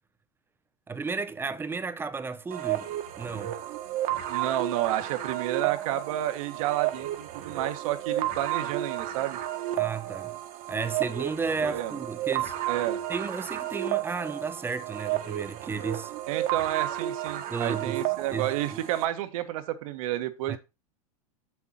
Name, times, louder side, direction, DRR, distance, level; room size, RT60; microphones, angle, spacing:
voice 1, 0.9-2.9 3.2-3.6 9.8-10.4 10.7-12.5 13.1-16.1 17.5-18.0 18.3-18.8 20.5-20.6, right 5 dB, 10° right, 0.7 m, -33 dB
sound 1, 2.5-19.1, right 13 dB, 45° right, 1.4 m, -32 dB
voice 2, 4.3-9.4 11.6-12.0 12.7-13.0 16.3-20.6, right 14 dB, 65° right, 1.5 m, -30 dB
7.3 x 7.2 x 4.2 m
supercardioid pair, 125°, 19 cm